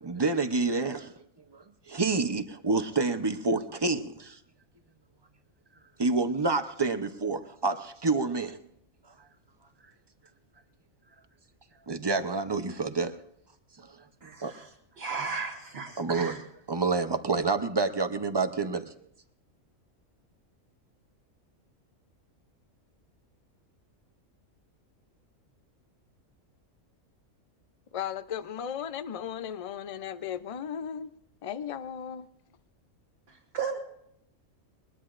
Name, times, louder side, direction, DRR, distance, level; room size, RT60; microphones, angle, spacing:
voice 1, 0.0-1.1 1.5-4.4 6.0-8.6 11.9-13.2 13.8-14.0 14.2-14.5 16.0-16.3 16.7-18.9, right 3 dB, 25° right, 9 dB, 0.6 m, -28 dB
voice 2, 14.2-14.7 15.0-16.4 33.3-33.8, right 5 dB, 55° right, -1 dB, 1.7 m, -35 dB
voice 3, 27.9-31.1 31.4-32.3, left 8 dB, 50° left, 13 dB, 0.4 m, -36 dB
21.5 x 21.0 x 2.5 m, 0.74 s
omnidirectional pair, 1.4 m